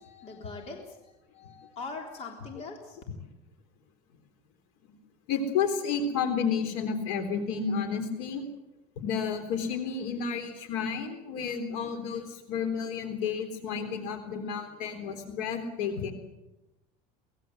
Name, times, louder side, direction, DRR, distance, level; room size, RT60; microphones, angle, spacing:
voice 1, 0.0-3.0, left 3 dB, 40° left, 2 dB, 3.5 m, -42 dB
voice 2, 5.3-8.5 9.0-16.1, left 6 dB, 80° left, 7 dB, 3.7 m, -31 dB
24.0 x 20.0 x 8.0 m, 0.97 s
cardioid pair, 155°, 17 cm